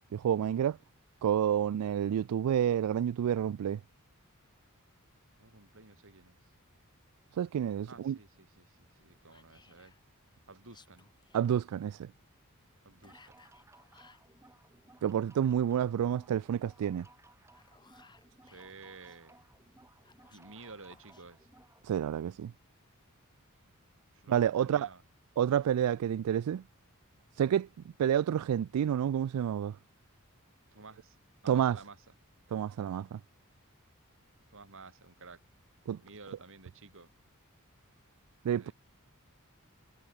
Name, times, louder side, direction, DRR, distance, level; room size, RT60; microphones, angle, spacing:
voice 1, 0.1-0.8 1.2-3.8 7.3-8.2 11.3-12.1 15.0-17.1 21.8-22.5 24.3-24.9 25.4-26.6 27.4-27.7 28.0-29.8 31.5-31.8 32.5-33.2 35.9-36.0 38.4-38.7, right 9 dB, 85° right, 0.3 m, -29 dB
voice 2, 5.4-6.4 7.9-9.9 10.5-11.1 12.8-13.4 18.4-19.5 20.3-21.5 24.1-25.0 30.7-31.2 31.4-32.0 34.5-35.4 36.0-37.1 38.6-38.7, right 3 dB, 60° right, 4.4 m, -52 dB
Whispering, 9.3-10.0 10.6-11.5 13.0-14.3 17.3-19.2 20.0-21.2, left 4 dB, 20° left, 1.2 m, -62 dB
sound 1, 12.9-21.8, right 2 dB, 10° right, 1.4 m, -61 dB
head